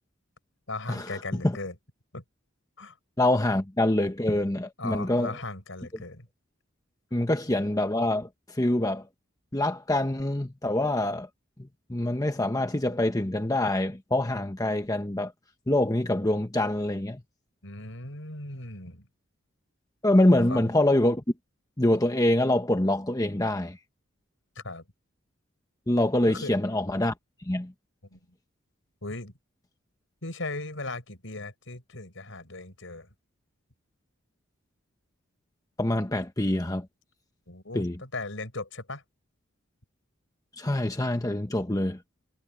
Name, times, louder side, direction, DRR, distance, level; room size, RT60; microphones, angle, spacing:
voice 1, 0.7-1.7 2.1-2.2 2.8-3.0 4.8-6.3 7.1-7.2 17.6-19.1 20.3-20.7 24.6-24.8 26.3-26.5 28.1-28.2 29.0-29.3 30.2-33.1 37.5-39.0, left 2 dB, 70° left, 6.3 m, -38 dB
voice 2, 3.2-5.3 7.1-8.3 8.6-9.0 9.5-11.3 11.9-15.3 15.7-17.2 20.0-21.2 21.8-23.8 25.9-27.1 27.5-27.7 35.8-36.9 37.7-38.0 40.6-42.0, left 1 dB, 15° left, 1.0 m, -25 dB
head